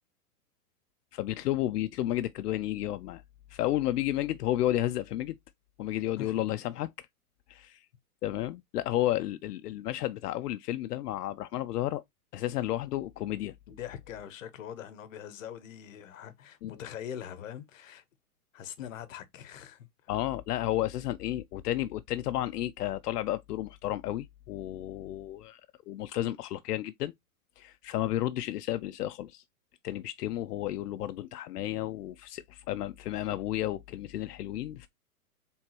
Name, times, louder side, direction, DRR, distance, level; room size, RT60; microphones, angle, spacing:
voice 1, 1.1-3.2 3.5-5.4 5.8-7.1 7.5-7.9 8.2-12.0 12.3-13.5 16.6-16.7 20.1-25.6 25.9-27.1 27.6-29.4 29.8-34.9, left 14 dB, 80° left, 0.5 m, -32 dB
voice 2, 13.7-18.0 18.5-20.1, left 9 dB, 55° left, 1.0 m, -43 dB
4.5 x 3.5 x 2.9 m
hypercardioid pair, 165°, 46 cm